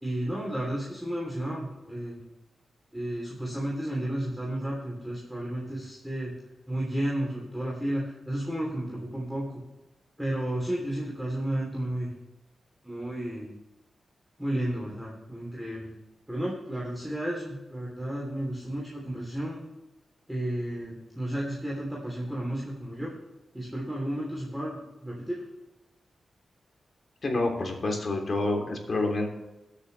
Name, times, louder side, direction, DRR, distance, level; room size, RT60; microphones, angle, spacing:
voice 1, 0.0-2.2 2.9-6.3 6.7-9.5 10.2-12.1 12.8-13.5 14.4-15.9 16.3-19.6 20.3-23.1 23.5-25.4, right 1 dB, 5° right, -4 dB, 3.3 m, -32 dB
voice 2, 27.2-29.3, left 2 dB, 45° left, 2 dB, 3.3 m, -28 dB
22.5 x 8.3 x 3.4 m, 1.0 s
wide cardioid pair, 120°, 0 cm